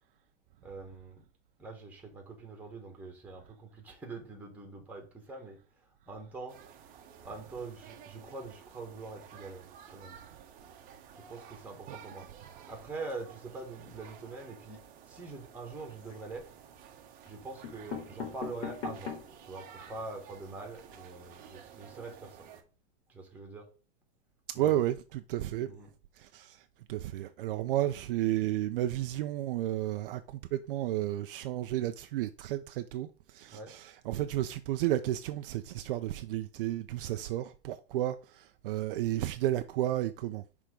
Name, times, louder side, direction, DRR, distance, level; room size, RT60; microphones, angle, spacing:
voice 1, 0.6-1.3 1.6-5.6 6.1-6.6 7.2-10.2 11.3-12.3 12.7-14.8 15.1-16.5 17.3-19.1 19.5-22.5 23.1-23.7 24.5-24.7 25.7-25.9 33.5-33.7, right 3 dB, 5° right, 1.5 m, -44 dB
sound 1, 6.5-22.6, right 8 dB, 25° right, 0.9 m, -53 dB
sound 2, 15.9-16.5 17.2-17.3 17.6-19.4 19.9-20.0 20.2-20.3 20.6-20.8, left 6 dB, 45° left, 2.6 m, -41 dB
voice 2, 24.5-25.7 26.2-26.6 26.9-40.4, right 13 dB, 55° right, 0.5 m, -32 dB
6.0 x 3.6 x 5.0 m
supercardioid pair, 155°, 33 cm